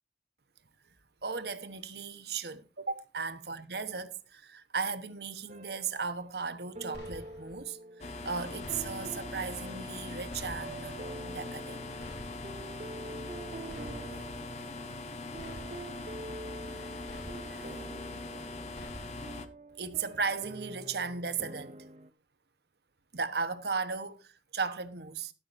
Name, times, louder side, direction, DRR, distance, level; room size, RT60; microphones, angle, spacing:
voice 1, 1.2-11.8 14.1-14.2 16.7-16.9 17.4-17.7 19.8-21.8 23.1-25.3, right 5 dB, 65° right, 1.1 m, -36 dB
sound 1, 5.5-6.4 6.8-22.1, right 2 dB, 35° right, 0.5 m, -47 dB
sound 2, 6.9-7.6 8.6-9.3 10.3-11.0 12.0-12.7 13.7-14.4 15.4-16.1 17.1-17.8 18.7-19.4, left 1 dB, 70° left, 3.7 m, -49 dB
sound 3, 8.0-19.5, left 2 dB, 40° left, 1.1 m, -41 dB
13.0 x 11.5 x 2.7 m
head